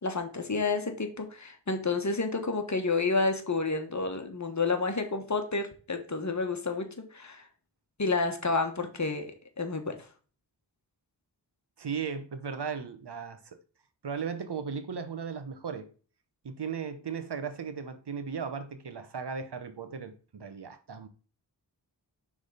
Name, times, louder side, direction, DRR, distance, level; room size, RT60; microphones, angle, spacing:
voice 1, 0.0-7.4 8.0-9.3 9.6-10.0, left 3 dB, 40° left, 1.2 m, -30 dB
voice 2, 11.8-13.6 14.0-15.9 16.4-21.1, right 6 dB, 65° right, 1.0 m, -36 dB
6.3 x 3.7 x 4.9 m
cardioid pair, 55°, 43 cm